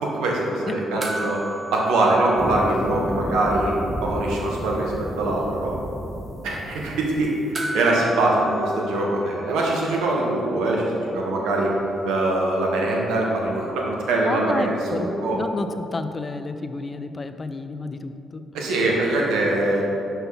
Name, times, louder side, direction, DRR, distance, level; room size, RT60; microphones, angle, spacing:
voice 1, 0.0-1.4 1.7-5.7 6.4-7.3 7.7-11.8 12.0-15.4 18.5-19.8, right 2 dB, 75° right, -2 dB, 1.2 m, -23 dB
sound 1, 1.0-3.7 3.9-4.0 7.5-10.1 12.3-12.4, right 1 dB, 45° right, 1.0 m, -35 dB
sound 2, 2.3-7.4, equal, 5° right, 0.8 m, -32 dB
voice 2, 14.3-18.4, left 3 dB, 35° left, 9 dB, 0.5 m, -30 dB
5.7 x 5.6 x 5.6 m, 2.9 s
hypercardioid pair, 45°, 0 cm